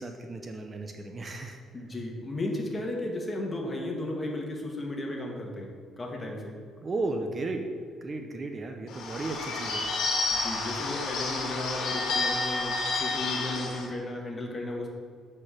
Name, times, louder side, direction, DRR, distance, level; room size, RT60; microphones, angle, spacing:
voice 1, 0.0-1.6 6.8-7.6 8.0-9.8, right 2 dB, 30° right, 4 dB, 0.6 m, -34 dB
voice 2, 1.7-5.7 6.0-6.6 10.3-14.9, left 1 dB, 25° left, 0 dB, 1.3 m, -34 dB
Bird / Bell, 8.9-13.9, left 3 dB, 75° left, 1.5 m, -30 dB
7.8 x 4.4 x 4.9 m, 2.1 s
cardioid pair, 110°, 0 cm